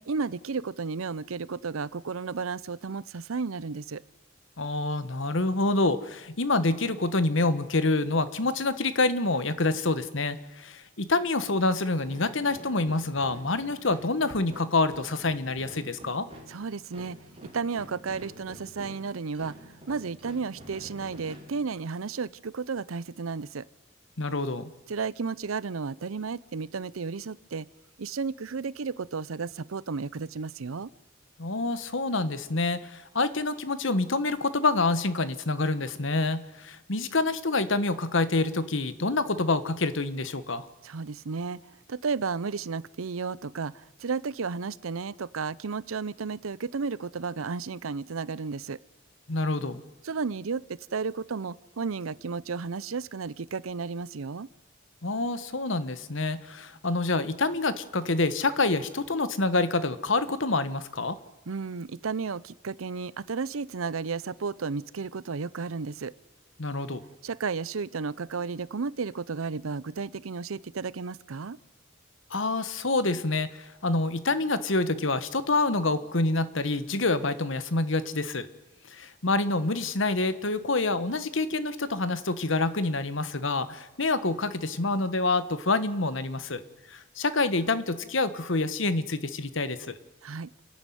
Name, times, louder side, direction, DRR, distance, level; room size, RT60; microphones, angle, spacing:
voice 1, 0.1-4.0 16.5-17.2 17.5-23.6 24.9-27.7 28.0-30.9 40.8-41.6 41.9-48.8 50.0-54.5 61.5-66.1 67.2-71.6 90.2-90.5, right 5 dB, 90° right, 21 dB, 0.6 m, -33 dB
voice 2, 4.6-16.3 24.2-24.7 31.4-40.7 49.3-49.8 55.0-61.2 66.6-67.0 72.3-78.5 78.9-86.6 86.9-90.0, left 3 dB, 70° left, 13 dB, 1.3 m, -27 dB
sound 1, 12.0-22.2, equal, 30° right, 3.5 m, -48 dB
28.5 x 11.5 x 9.3 m, 1.1 s
head